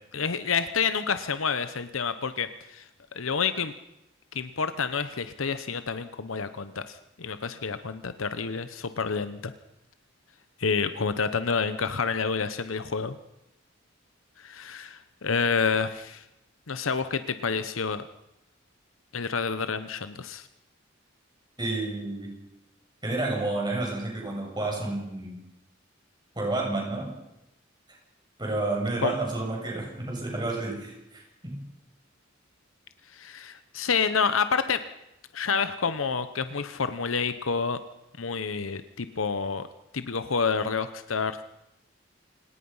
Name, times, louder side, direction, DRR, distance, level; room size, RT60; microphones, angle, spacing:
voice 1, 0.1-2.9 3.1-3.7 4.3-9.5 10.6-13.2 14.4-16.2 16.7-18.0 19.1-20.5 29.0-29.1 33.1-34.8 35.3-37.8 38.2-39.7 39.9-41.4, left 5 dB, 85° left, 11 dB, 0.9 m, -28 dB
voice 2, 21.6-22.3 23.0-25.4 26.4-27.1 28.4-31.7, right 2 dB, 20° right, -1 dB, 7.1 m, -30 dB
28.5 x 18.5 x 5.6 m, 0.90 s
head